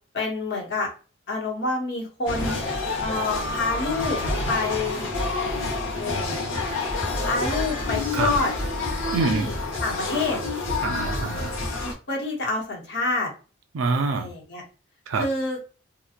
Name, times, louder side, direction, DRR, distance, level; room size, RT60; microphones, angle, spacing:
voice 1, 0.1-0.9 1.3-2.6 3.0-4.2 4.5-5.1 5.9-6.4 7.2-8.5 9.2-9.5 9.8-10.4 12.1-13.3 14.1-14.6 15.2-15.6, left 3 dB, 55° left, 0.9 m, -27 dB
sound 1, 2.3-11.9, left 2 dB, 85° left, 0.8 m, -28 dB
voice 2, 9.1-9.5 10.8-11.5 13.7-14.3 15.1-15.3, right 4 dB, 85° right, 0.4 m, -26 dB
2.8 x 2.2 x 2.4 m
head